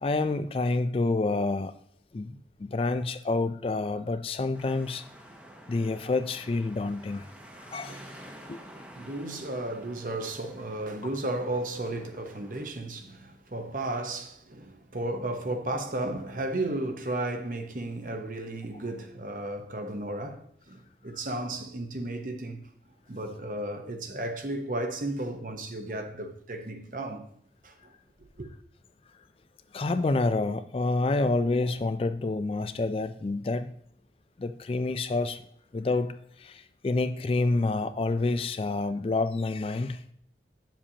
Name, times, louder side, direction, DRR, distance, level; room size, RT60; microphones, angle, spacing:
voice 1, 0.0-1.7 2.1-5.0 5.7-7.3 7.7-8.0 8.5-8.6 29.7-33.7 34.4-35.4 35.7-40.1, left 3 dB, 30° left, 0.3 m, -28 dB
sound 1, 4.5-12.7, right 1 dB, 5° right, 0.8 m, -49 dB
voice 2, 7.9-8.4 8.7-22.7 23.1-27.3 27.6-27.9 28.4-28.5, right 2 dB, 50° right, 0.9 m, -34 dB
8.6 x 7.3 x 2.8 m
head